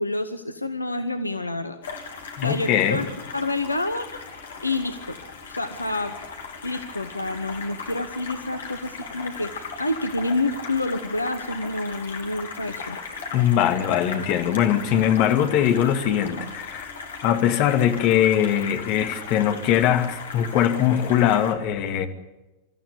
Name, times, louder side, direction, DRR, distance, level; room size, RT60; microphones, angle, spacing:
voice 1, 0.0-1.8 2.4-3.1 3.3-4.2 4.6-5.2 5.5-6.1 6.6-13.0, left 2 dB, 85° left, 9 dB, 1.0 m, -28 dB
sound 1, 1.8-21.5, left 5 dB, 65° left, 3.2 m, -37 dB
voice 2, 2.4-3.0 13.3-16.9 17.2-22.1, left 10 dB, 45° left, 6 dB, 2.2 m, -21 dB
26.0 x 14.0 x 8.5 m, 1.0 s
figure-of-eight pair, 90°, 0 cm